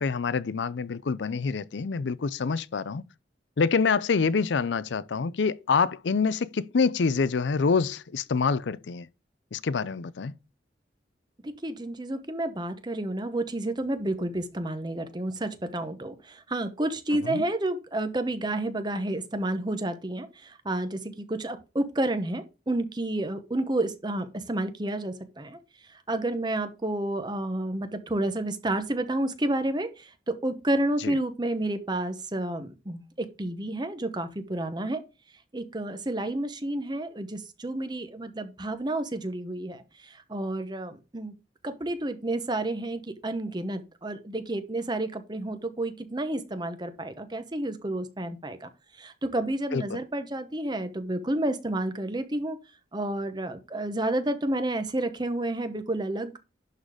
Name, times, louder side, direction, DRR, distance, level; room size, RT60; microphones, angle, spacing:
voice 1, 0.0-3.0 3.6-9.1 9.5-10.3 17.2-17.4 31.0-31.1 49.7-50.0, left 5 dB, 85° left, 0.5 m, -26 dB
voice 2, 11.4-25.6 26.1-35.0 35.5-41.3 41.6-48.7 49.0-52.6 52.9-56.4, right 1 dB, 25° right, 1.0 m, -30 dB
11.0 x 4.0 x 4.9 m
head